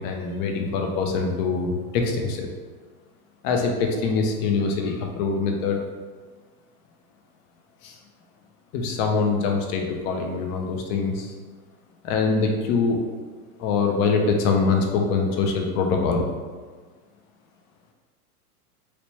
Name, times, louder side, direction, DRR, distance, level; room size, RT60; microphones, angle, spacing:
voice 1, 0.0-2.5 3.4-5.8 7.8-8.0 8.7-11.3 12.0-13.0 13.6-16.3, left 4 dB, 45° left, 3 dB, 0.7 m, -24 dB
3.0 x 3.0 x 3.1 m, 1.4 s
hypercardioid pair, 105°, 45 cm